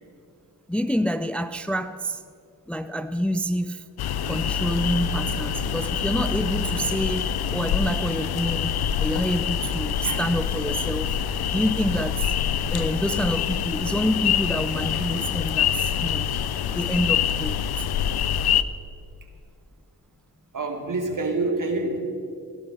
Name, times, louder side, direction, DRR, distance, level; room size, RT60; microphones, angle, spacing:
voice 1, 0.7-2.2 2.7-3.8 4.2-11.2 11.5-12.3 12.7-16.3 16.7-17.7, equal, 5° left, 0.5 m, -27 dB
sound 1, 4.0-18.6, left 8 dB, 80° left, 0.6 m, -26 dB
voice 2, 20.5-22.0, right 2 dB, 55° right, 2.6 m, -27 dB
16.5 x 11.5 x 6.3 m
cardioid pair, 60°, 37 cm